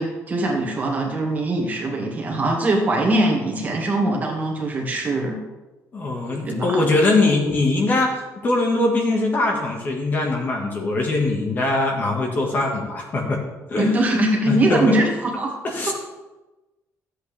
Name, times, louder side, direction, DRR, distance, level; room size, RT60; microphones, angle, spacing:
voice 1, 0.0-5.4 6.4-6.8 13.8-15.5 15.9-16.0, right 1 dB, 30° right, 0 dB, 1.8 m, -22 dB
voice 2, 5.9-13.4 13.7-13.9 14.4-14.8 15.6-15.9, left 2 dB, 35° left, 1 dB, 1.6 m, -22 dB
13.0 x 8.1 x 3.4 m, 1.1 s
cardioid pair, 160°, 6 cm